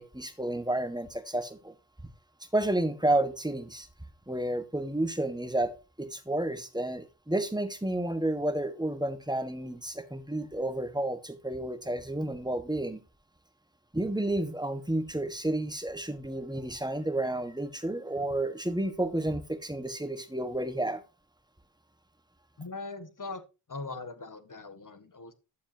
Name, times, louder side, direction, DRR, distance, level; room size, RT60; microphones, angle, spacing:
voice 1, 0.0-1.7 2.5-3.9 4.3-5.7 6.0-13.0 13.9-21.0, right 1 dB, 10° right, 1.4 m, -31 dB
voice 2, 22.6-23.4 23.7-25.3, left 3 dB, 40° left, 1.5 m, -40 dB
12.0 x 7.1 x 2.8 m
cardioid pair, 45°, 48 cm